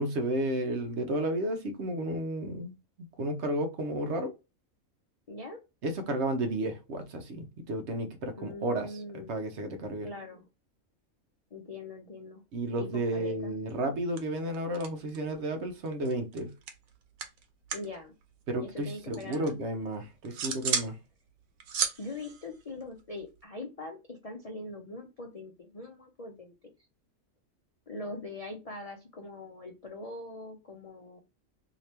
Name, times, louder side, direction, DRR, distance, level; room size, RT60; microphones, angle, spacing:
voice 1, 0.0-2.7 3.2-4.3 5.8-8.9 9.1-10.1 12.5-16.5 18.5-21.0, right 1 dB, 60° right, 0.9 m, -32 dB
voice 2, 5.3-5.6 8.4-9.4 10.0-10.5 11.5-12.4 12.8-13.5 17.7-18.1 18.6-19.6 22.0-26.5 27.9-31.2, left 2 dB, 50° left, 0.4 m, -42 dB
sound 1, 13.7-13.9 14.2-15.4 15.7-18.0 18.2-19.5 19.9-21.0 21.3-23.4, right 6 dB, 85° right, 1.1 m, -35 dB
3.2 x 2.8 x 2.8 m
omnidirectional pair, 1.4 m